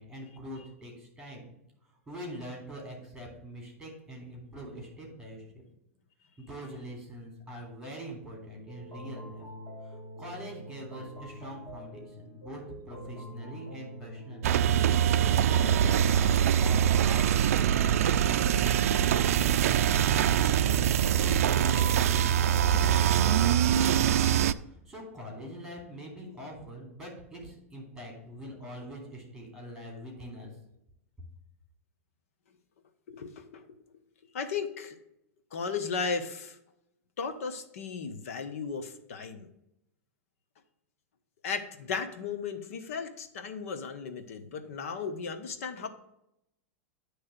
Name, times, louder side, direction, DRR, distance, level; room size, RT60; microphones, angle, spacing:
voice 1, 0.0-1.5 2.1-5.4 6.4-9.5 9.8-14.5 15.3-19.3 21.0-24.3 24.7-30.5, equal, 5° right, 0 dB, 3.2 m, -43 dB
sound 1, 8.7-24.5, equal, 20° left, 1.9 m, -45 dB
sound 2, 14.4-24.5, right 10 dB, 80° right, 0.4 m, -24 dB
voice 2, 33.1-33.6 34.3-35.0 35.5-36.6 37.2-39.5 41.4-45.9, left 5 dB, 75° left, 8 dB, 1.1 m, -35 dB
9.7 x 3.3 x 6.6 m, 0.82 s
supercardioid pair, 130°, 8 cm